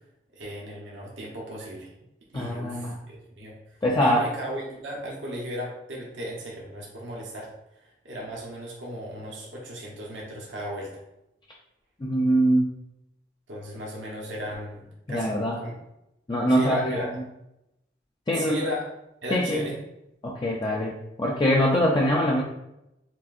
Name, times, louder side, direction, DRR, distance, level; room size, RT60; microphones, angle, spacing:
voice 1, 0.3-1.9 2.3-3.5 4.0-7.5 8.0-10.9 13.5-15.7 16.5-17.1 18.3-18.8 19.2-19.8, equal, 85° right, -3 dB, 1.1 m, -35 dB
voice 2, 2.3-2.9 3.8-4.2 12.0-12.7 15.1-15.6 16.3-17.0 18.3-18.7 19.3-19.6 20.2-20.9 21.2-22.4, equal, 25° left, -3 dB, 0.4 m, -23 dB
5.9 x 2.6 x 2.5 m, 0.85 s
head